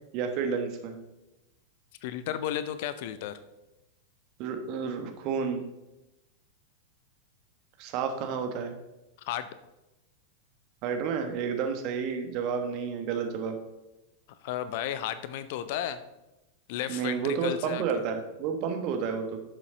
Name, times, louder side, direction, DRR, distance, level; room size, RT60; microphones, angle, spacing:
voice 1, 0.1-1.0 4.4-5.6 7.8-8.7 10.8-13.6 16.9-19.5, right 6 dB, 40° right, 5 dB, 1.4 m, -31 dB
voice 2, 2.0-3.4 9.2-9.5 14.4-16.0 16.7-18.0, left 11 dB, 50° left, 13 dB, 0.6 m, -33 dB
11.0 x 6.8 x 3.9 m, 0.97 s
figure-of-eight pair, 90°, 0 cm